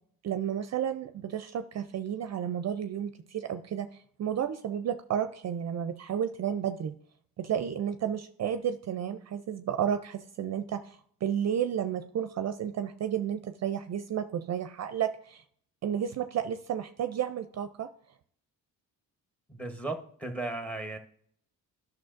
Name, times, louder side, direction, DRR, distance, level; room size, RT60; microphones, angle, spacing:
voice 1, 0.2-6.9 7.4-15.4 15.8-17.9, right 9 dB, 45° right, 9 dB, 0.5 m, -32 dB
voice 2, 19.5-21.0, right 2 dB, 5° left, 6 dB, 1.0 m, -36 dB
11.0 x 6.2 x 2.6 m, 0.63 s
cardioid pair, 100°, 37 cm